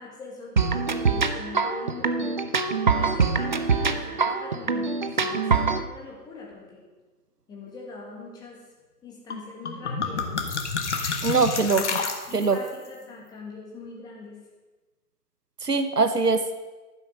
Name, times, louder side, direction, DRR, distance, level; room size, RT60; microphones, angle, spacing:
voice 1, 0.0-2.5 2.7-6.8 7.5-8.6 9.0-10.5 11.7-14.4, left 3 dB, 10° left, -2 dB, 1.8 m, -42 dB
sound 1, 0.6-5.8, right 5 dB, 30° right, 0.5 m, -24 dB
sound 2, 9.3-9.4 9.7-12.7, left 5 dB, 45° left, 1.5 m, -29 dB
voice 2, 11.2-11.8 12.3-12.6 15.6-16.6, right 4 dB, 85° right, 9 dB, 1.1 m, -22 dB
11.5 x 9.6 x 5.5 m, 1.2 s
figure-of-eight pair, 130°, 46 cm